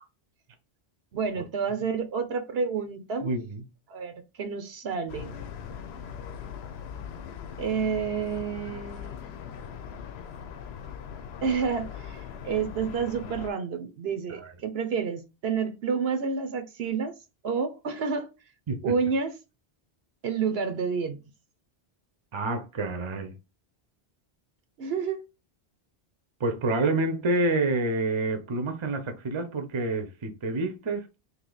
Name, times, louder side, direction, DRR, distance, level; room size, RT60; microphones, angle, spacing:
voice 1, 1.1-3.3 3.9-5.4 7.6-9.2 11.4-17.1 17.4-18.3 18.8-19.3 20.2-21.2 24.8-25.2, right 5 dB, 75° right, 0.9 m, -29 dB
voice 2, 3.2-3.6 14.3-14.4 18.7-18.9 22.3-23.3 26.4-31.1, right 2 dB, 30° right, 0.6 m, -28 dB
sound 1, 5.1-13.5, left 7 dB, 80° left, 0.9 m, -40 dB
3.3 x 2.8 x 3.9 m
omnidirectional pair, 1.1 m